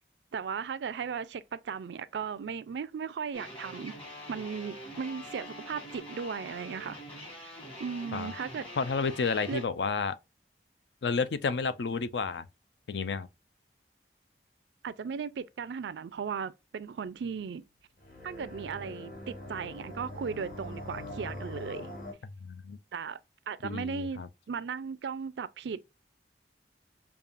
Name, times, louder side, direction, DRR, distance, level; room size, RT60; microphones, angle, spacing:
voice 1, 0.3-3.9 4.3-7.0 7.4-7.5 7.8-8.7 9.5-9.6 14.8-17.6 18.2-21.9 22.9-23.2 23.5-25.8, right 6 dB, 80° right, 0.4 m, -36 dB
sound 1, 3.3-9.6, left 1 dB, 30° left, 1.5 m, -45 dB
voice 2, 8.8-10.2 11.0-12.5 12.9-13.3 22.2-22.8 23.6-24.3, left 4 dB, 75° left, 0.5 m, -31 dB
sound 2, 18.0-22.1, left 1 dB, 50° left, 1.6 m, -42 dB
5.3 x 2.4 x 2.4 m
head